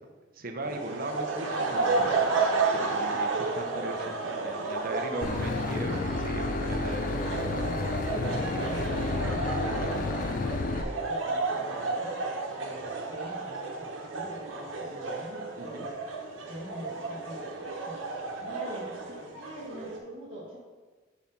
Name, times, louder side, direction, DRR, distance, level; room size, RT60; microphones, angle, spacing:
voice 1, 0.3-2.4 2.7-7.7 15.6-15.9, right 1 dB, 50° right, 4 dB, 0.7 m, -38 dB
sound 1, 0.6-20.0, right 3 dB, 85° right, 1.0 m, -32 dB
Boat Water vehicle / Engine, 5.2-10.8, left 3 dB, 45° left, 0.4 m, -31 dB
voice 2, 7.2-12.2 12.6-15.9 16.5-17.5 17.8-18.0 18.4-20.6, equal, 30° right, -9 dB, 1.5 m, -43 dB
5.5 x 4.9 x 5.3 m, 1.4 s
head